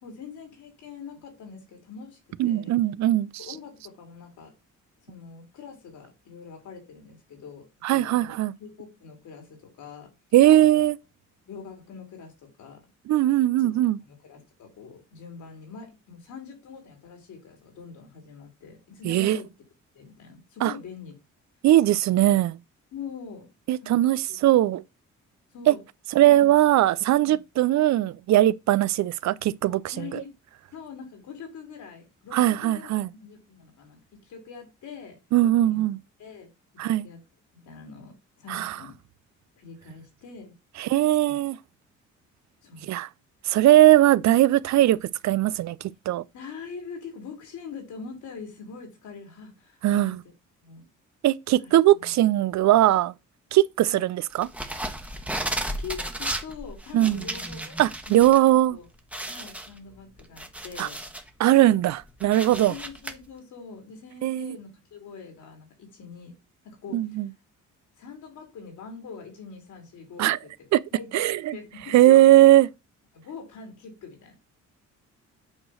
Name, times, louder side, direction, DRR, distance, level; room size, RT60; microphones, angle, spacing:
voice 1, 0.0-2.2 2.4-2.8 3.4-4.5 5.0-8.3 8.6-10.1 10.6-10.8 11.4-12.8 13.5-13.8 14.1-19.5 19.9-21.1 22.9-24.4 25.5-25.8 26.2-26.5 27.1-27.4 29.9-30.3 30.7-32.9 33.2-35.8 36.2-37.2 37.5-38.9 39.6-40.5 41.1-41.4 42.6-42.9 46.3-50.2 50.6-50.9 51.8-52.1 53.8-54.1 55.4-57.8 58.1-58.9 59.2-61.0 62.7-66.3 66.6-67.2 68.0-70.5 70.9-72.2 73.1-74.3, left 5 dB, 75° left, 3.3 m, -43 dB
voice 2, 2.4-3.3 7.8-8.5 10.3-11.0 13.1-14.0 19.0-19.4 20.6-20.7 21.6-22.6 23.7-24.8 25.7-25.8 26.1-30.2 32.3-33.1 35.3-36.0 36.8-37.1 38.5-38.8 40.8-41.6 42.9-43.1 43.5-46.2 49.8-50.2 51.2-53.1 53.5-54.5 56.9-57.2 57.8-58.8 60.8-60.9 61.4-62.7 64.2-64.6 66.9-67.3 70.2-70.4 70.7-70.8 71.1-71.6 71.9-72.7, right 14 dB, 65° right, 0.5 m, -20 dB
sound 1, 54.4-58.4 58.7-58.8 59.1-61.3 61.7-63.1, right 1 dB, 5° right, 1.2 m, -34 dB
8.7 x 3.1 x 6.3 m
cardioid pair, 90°, 30 cm